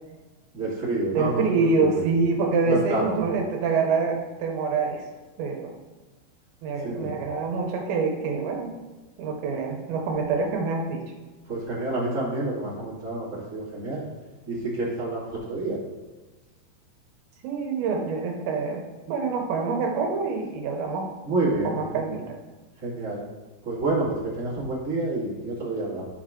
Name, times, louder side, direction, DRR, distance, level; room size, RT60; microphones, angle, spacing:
voice 1, 0.5-2.0 2.6-3.0 6.8-7.1 11.5-14.0 14.5-15.8 21.2-22.1 22.8-23.2 23.6-26.0, right 2 dB, 25° right, -8 dB, 1.7 m, -28 dB
voice 2, 1.1-5.0 5.4-5.8 6.6-8.7 9.2-11.0 17.4-18.8 19.1-21.1 21.6-22.4, right 4 dB, 75° right, 1 dB, 2.9 m, -26 dB
13.0 x 4.7 x 3.7 m, 1.2 s
omnidirectional pair, 5.5 m